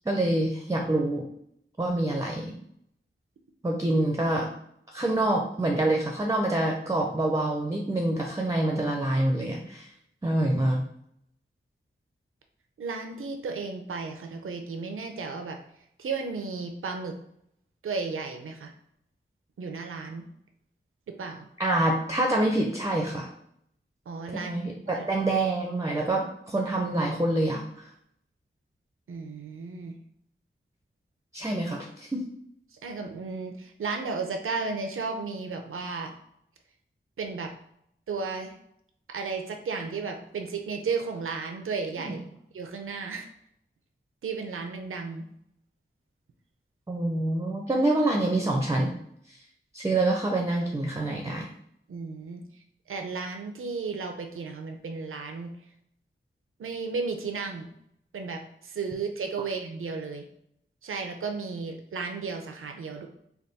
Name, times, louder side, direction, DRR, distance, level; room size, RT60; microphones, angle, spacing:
voice 1, 0.1-1.2 1.8-2.5 3.6-4.5 4.9-9.9 10.2-10.8 21.6-23.3 24.3-27.8 31.3-32.2 42.0-42.1 46.9-48.9 49.3-49.4 49.7-51.5, right 1 dB, 15° right, 0 dB, 0.5 m, -26 dB
voice 2, 12.8-15.6 16.0-17.2 17.8-18.7 19.6-20.2 21.2-21.5 24.1-24.5 24.9-25.1 29.1-29.9 32.8-36.1 37.2-37.5 38.1-38.5 39.1-42.2 42.5-43.3 44.2-45.2 51.9-52.4 52.9-55.5 56.6-57.7 58.1-60.2 60.8-63.1, right 4 dB, 80° right, 4 dB, 0.5 m, -34 dB
3.4 x 2.2 x 4.0 m, 0.73 s
wide cardioid pair, 65°, 21 cm